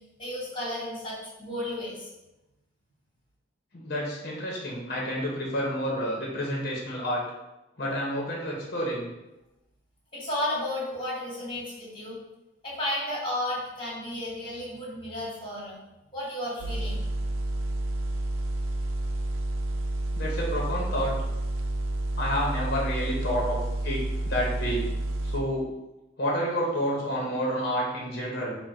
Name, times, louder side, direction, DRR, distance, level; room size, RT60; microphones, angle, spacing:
voice 1, 0.2-2.1 10.1-12.2 12.6-15.8 16.1-17.0, left 1 dB, 25° left, -5 dB, 1.5 m, -33 dB
voice 2, 3.7-7.2 7.8-9.1 20.1-21.1 22.2-23.6 23.8-24.8 25.2-25.7 26.2-28.6, equal, 50° left, -3 dB, 0.9 m, -29 dB
sound 1, 16.6-25.4, right 1 dB, 90° right, 0.4 m, -30 dB
3.8 x 2.2 x 4.3 m, 0.98 s
head